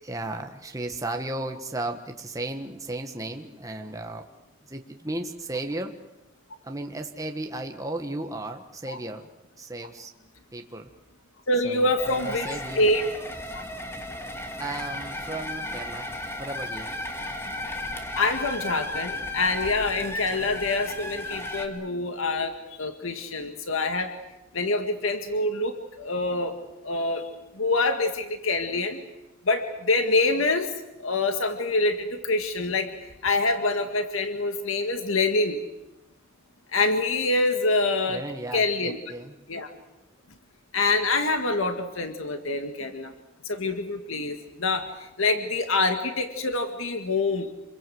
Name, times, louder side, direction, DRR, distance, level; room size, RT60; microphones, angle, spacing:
voice 1, 0.0-4.3 4.7-5.9 6.6-9.3 9.6-10.9 11.6-12.9 14.6-16.9 20.4-20.6 38.1-39.3 42.8-43.0, right 2 dB, 15° right, 4 dB, 1.5 m, -35 dB
voice 2, 11.5-12.5 12.8-13.0 13.5-13.6 18.1-24.1 24.5-26.6 26.8-27.2 27.5-29.0 29.4-30.7 31.0-35.6 36.7-38.2 38.5-39.0 39.5-39.7 40.7-43.1 43.5-47.5, left 2 dB, 80° left, 6 dB, 2.0 m, -26 dB
sound 1, 12.0-21.7, left 1 dB, 10° left, 2.3 m, -34 dB
27.0 x 23.0 x 7.9 m, 0.91 s
head